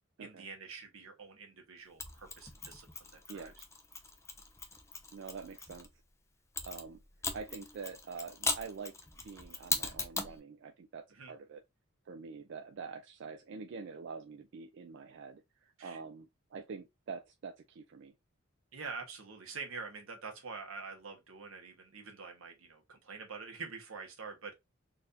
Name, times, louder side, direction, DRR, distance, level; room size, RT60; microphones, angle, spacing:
voice 1, 0.2-3.5 11.1-11.3 15.8-16.0 18.7-24.5, right 4 dB, 85° right, 1.1 m, -46 dB
Mechanisms, 2.0-5.9 6.6-10.4, left 4 dB, 15° left, 0.4 m, -39 dB
voice 2, 5.1-5.9 6.6-7.0 7.3-9.0 9.2-11.6 12.1-18.1, right 5 dB, 60° right, 0.4 m, -46 dB
4.0 x 2.6 x 2.6 m
head